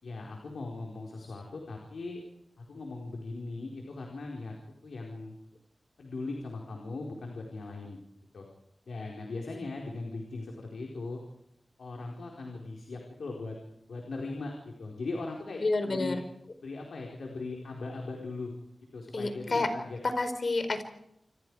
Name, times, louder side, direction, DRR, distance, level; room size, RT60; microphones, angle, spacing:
voice 1, 0.0-2.2 2.6-4.5 4.8-5.4 6.0-8.0 8.3-8.4 8.9-11.2 11.8-13.5 13.9-16.2 16.6-18.5 18.9-20.0, left 3 dB, 85° left, 0 dB, 4.5 m, -39 dB
voice 2, 15.6-16.2 19.1-19.7 20.0-20.8, left 3 dB, 60° left, 9 dB, 4.7 m, -29 dB
28.5 x 27.0 x 4.9 m, 0.77 s
cardioid pair, 55°, 0 cm